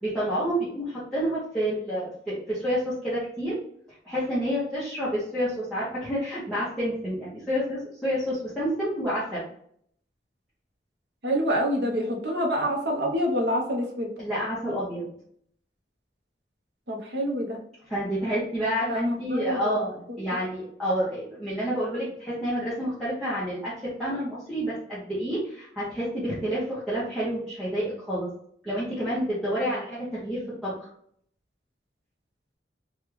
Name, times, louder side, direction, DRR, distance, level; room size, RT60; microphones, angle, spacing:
voice 1, 0.0-3.6 4.0-9.4 14.2-15.1 17.9-28.3 28.6-30.9, equal, ahead, -11 dB, 0.9 m, -29 dB
voice 2, 11.2-14.1 16.9-17.6 18.9-19.8 20.3-20.4, equal, 75° right, 0 dB, 0.9 m, -27 dB
3.4 x 2.4 x 3.2 m, 0.64 s
head